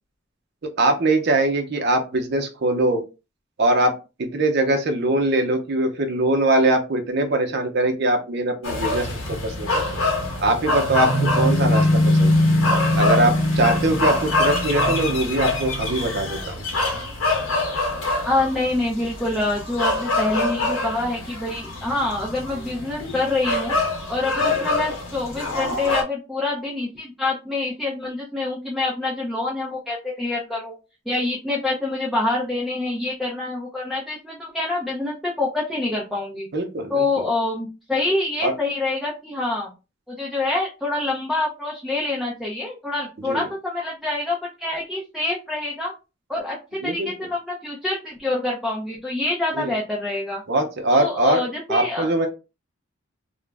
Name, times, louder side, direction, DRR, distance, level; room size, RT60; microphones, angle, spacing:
voice 1, 0.8-3.0 3.6-3.9 4.2-10.0 10.4-12.4 13.0-16.6 36.5-37.1 38.4-38.5 43.2-43.5 46.8-47.1 49.5-49.7 50.5-51.4 51.7-52.3, right 1 dB, 55° right, 5 dB, 0.6 m, -22 dB
sound 1, 8.6-26.0, left 2 dB, 80° left, 0.9 m, -23 dB
voice 2, 18.2-23.7 24.1-30.7 31.1-36.5 36.9-39.7 40.1-45.9 46.3-50.4 50.9-52.1, left 2 dB, ahead, -4 dB, 0.5 m, -26 dB
2.4 x 2.0 x 3.3 m, 0.29 s
head